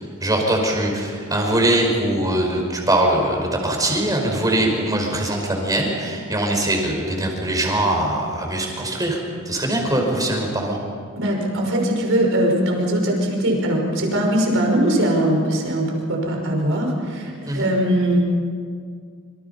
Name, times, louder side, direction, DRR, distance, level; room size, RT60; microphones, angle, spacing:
voice 1, 0.0-9.2 9.5-10.8 17.5-17.7, right 1 dB, 15° right, 1 dB, 5.4 m, -22 dB
voice 2, 11.2-18.2, right 1 dB, 65° right, 1 dB, 5.8 m, -21 dB
27.0 x 26.0 x 5.6 m, 2.1 s
head